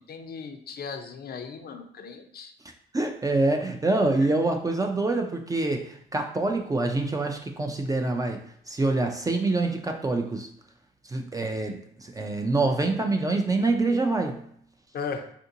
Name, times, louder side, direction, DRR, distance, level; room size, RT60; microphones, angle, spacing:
voice 1, 0.1-2.5 4.2-4.3 14.9-15.3, left 5 dB, 50° left, 6 dB, 0.5 m, -37 dB
voice 2, 2.9-8.4 8.7-10.5 11.1-14.4, right 2 dB, 15° right, 4 dB, 0.4 m, -26 dB
3.6 x 2.5 x 2.7 m, 0.65 s
cardioid pair, 90°, 20 cm